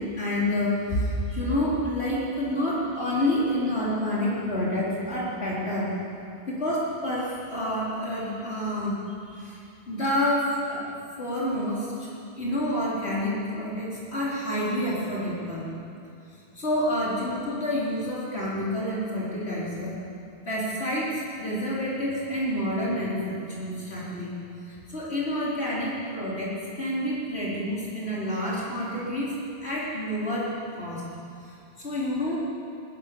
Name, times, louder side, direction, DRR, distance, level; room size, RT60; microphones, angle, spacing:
voice 1, 0.0-5.9 6.5-9.0 9.3-9.6 9.9-12.1 12.4-15.7 16.3-19.9 20.5-24.3 24.6-31.0 31.4-32.4, left 1 dB, 90° left, -7 dB, 4.3 m, -28 dB
20.0 x 19.5 x 7.0 m, 2.6 s
omnidirectional pair, 1.1 m